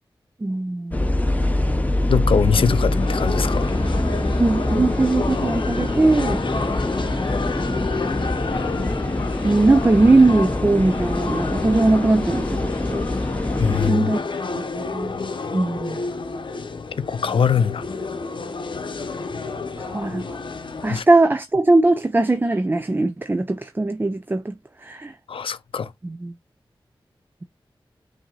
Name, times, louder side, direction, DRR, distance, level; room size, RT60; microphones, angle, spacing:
voice 1, 0.4-1.1 4.4-6.4 9.4-13.0 13.7-14.2 14.5-15.1 15.5-16.0 19.8-20.4 20.8-24.6 24.8-25.1 26.0-26.3, right 2 dB, 25° right, 0.4 m, -20 dB
sound 1, 0.9-13.9, left 1 dB, 15° left, 0.8 m, -24 dB
voice 2, 2.1-3.7 13.6-14.1 17.0-17.8 20.9-21.0 25.3-25.9, left 7 dB, 85° left, 0.5 m, -22 dB
sound 2, 2.5-21.0, left 4 dB, 65° left, 0.8 m, -30 dB
5.8 x 2.8 x 2.3 m
wide cardioid pair, 65°, 9 cm